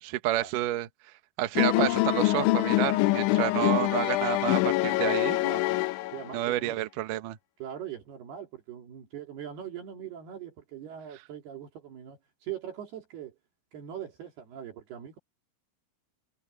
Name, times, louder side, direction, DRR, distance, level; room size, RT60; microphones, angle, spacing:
voice 1, 0.0-0.9 1.4-5.4 6.3-7.4, right 14 dB, 85° right, 1.8 m, -29 dB
sound 1, 1.6-6.4, left 19 dB, 80° left, 3.1 m, -25 dB
voice 2, 5.4-5.8 6.1-6.8 7.6-13.4 13.7-15.2, right 10 dB, 60° right, 4.4 m, -41 dB
omnidirectional pair, 5.6 m